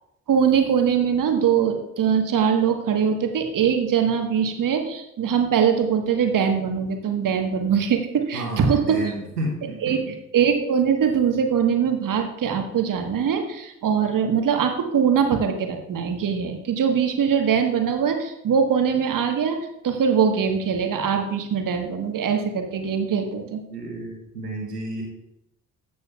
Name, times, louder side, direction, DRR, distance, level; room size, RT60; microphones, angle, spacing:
voice 1, 0.3-9.0 9.8-10.0 10.3-23.6, right 7 dB, 45° right, 5 dB, 1.4 m, -22 dB
voice 2, 8.3-9.9 23.4-25.0, right 2 dB, 85° right, -2 dB, 1.4 m, -31 dB
13.5 x 8.3 x 2.4 m, 0.85 s
figure-of-eight pair, 45°, 45 cm